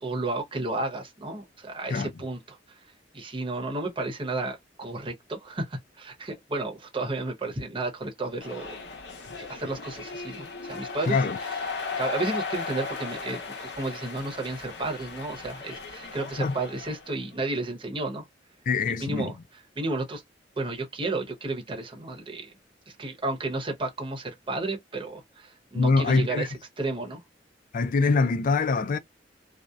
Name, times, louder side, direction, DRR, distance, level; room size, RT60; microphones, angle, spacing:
voice 1, 0.0-2.6 3.1-8.7 9.4-11.2 11.4-11.6 12.0-18.2 19.0-19.4 19.8-20.2 20.6-22.5 23.0-27.2, right 2 dB, 30° right, 0.8 m, -32 dB
sound 1, 8.4-17.2, left 4 dB, 70° left, 0.9 m, -36 dB
voice 2, 11.1-11.4 16.4-16.6 18.7-19.3 25.7-26.5 27.7-29.0, left 4 dB, 50° left, 0.4 m, -24 dB
2.7 x 2.0 x 2.3 m
head